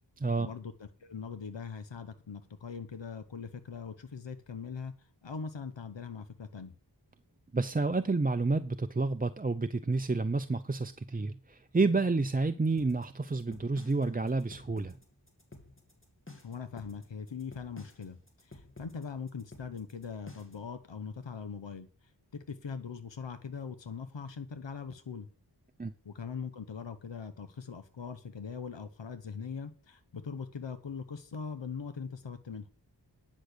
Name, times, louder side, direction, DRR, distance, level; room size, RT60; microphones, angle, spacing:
voice 1, 0.4-6.7 16.4-25.3 26.0-32.7, left 6 dB, 90° left, 1.0 m, -41 dB
voice 2, 7.5-15.0 25.8-25.9, right 3 dB, 20° right, 0.5 m, -29 dB
sound 1, 12.8-20.7, left 2 dB, 30° left, 2.5 m, -52 dB
10.5 x 6.4 x 6.6 m
wide cardioid pair, 45°, 43 cm